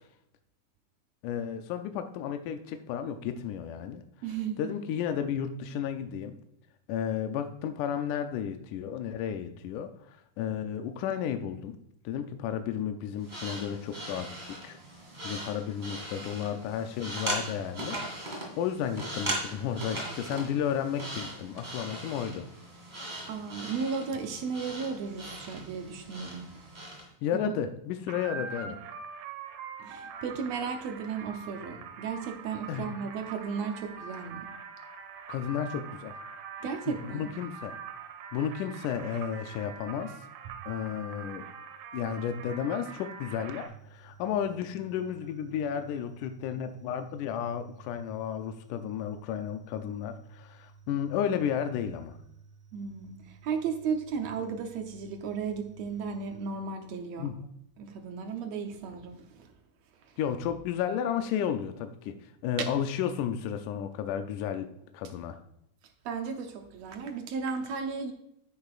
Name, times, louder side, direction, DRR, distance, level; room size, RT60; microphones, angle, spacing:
voice 1, 1.2-4.0 4.6-6.4 6.9-11.8 12.1-14.8 15.2-22.5 27.2-28.8 32.7-32.8 35.3-36.2 36.9-37.8 38.3-40.2 40.7-41.5 41.9-52.2 57.2-57.4 60.2-65.4, left 8 dB, 80° left, 7 dB, 2.1 m, -33 dB
voice 2, 4.2-4.6 23.3-26.5 27.3-27.6 29.8-34.5 36.6-37.3 52.7-57.3 57.8-59.5 62.6-62.7 66.1-68.1, right 6 dB, 70° right, 5 dB, 1.8 m, -35 dB
sound 1, 13.2-27.1, right 1 dB, 15° right, 1.9 m, -39 dB
sound 2, 28.1-43.7, right 6 dB, 90° right, 2.5 m, -44 dB
sound 3, 43.6-56.5, right 6 dB, 40° right, 2.0 m, -55 dB
9.9 x 8.6 x 2.4 m, 0.77 s
omnidirectional pair, 3.6 m